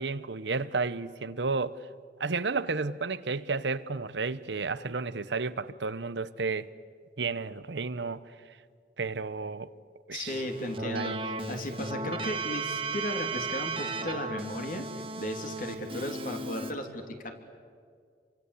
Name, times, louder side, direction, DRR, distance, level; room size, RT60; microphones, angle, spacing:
voice 1, 0.0-1.8 2.2-6.7 7.2-8.2 9.0-9.7 10.1-10.4 10.8-11.2, right 4 dB, 75° right, 0.9 m, -32 dB
voice 2, 10.1-17.3, left 1 dB, 45° left, 3.2 m, -35 dB
Keyboard (musical), 10.3-16.7, right 3 dB, 30° right, 2.4 m, -35 dB
29.0 x 24.5 x 8.4 m
head